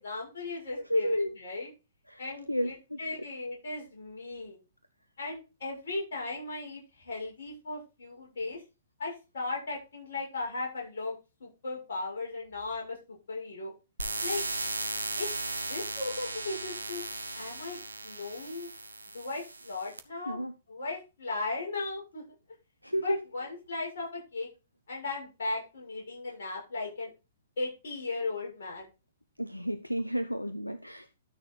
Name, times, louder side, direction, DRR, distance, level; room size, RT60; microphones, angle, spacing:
voice 1, 0.0-1.7 2.2-4.6 5.2-8.6 9.0-13.7 14.2-14.4 15.2-15.3 15.7-17.1 17.3-18.7 19.1-20.4 20.7-22.2 23.0-24.5 24.9-27.1 27.6-28.9, left 3 dB, 55° left, -2 dB, 6.9 m, -37 dB
voice 2, 0.9-1.3 2.1-2.2 2.5-3.0 20.3-20.5 22.8-23.2 29.4-31.1, equal, 90° left, 10 dB, 0.7 m, -31 dB
sound 1, 14.0-20.0, right 2 dB, 80° right, 1.4 m, -36 dB
12.5 x 6.6 x 4.1 m, 0.29 s
figure-of-eight pair, 115°, 0 cm